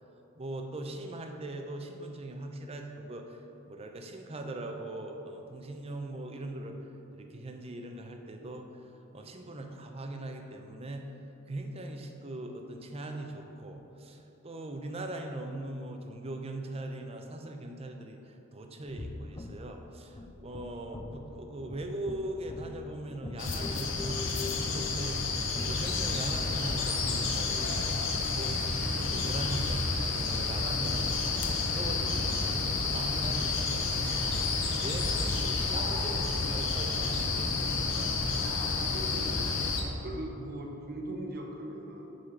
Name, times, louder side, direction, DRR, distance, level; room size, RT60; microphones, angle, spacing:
voice 1, 0.4-3.4 3.7-6.8 7.1-8.8 9.1-11.1 11.5-25.2 25.4-27.7 28.1-38.2, right 1 dB, 30° right, 4 dB, 0.6 m, -40 dB
sound 1, 18.9-27.0, left 3 dB, 20° left, 0.3 m, -43 dB
sound 2, 23.4-39.8, left 3 dB, 65° left, 0.8 m, -30 dB
voice 2, 38.6-39.4 40.0-42.2, right 1 dB, 45° right, 0 dB, 1.0 m, -40 dB
7.8 x 4.2 x 5.8 m, 2.9 s
head